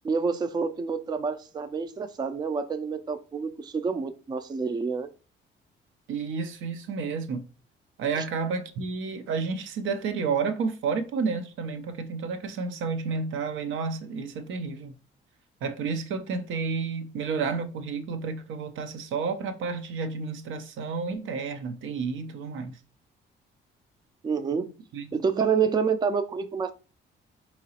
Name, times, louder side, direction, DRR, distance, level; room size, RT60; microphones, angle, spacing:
voice 1, 0.0-5.1 8.2-8.3 24.2-24.7 25.1-26.7, right 5 dB, 20° right, 0.3 m, -28 dB
voice 2, 6.1-7.4 8.0-14.9 15.6-22.8 24.9-25.1, right 5 dB, 75° right, 0.5 m, -31 dB
3.8 x 2.9 x 2.8 m
cardioid pair, 90°, 20 cm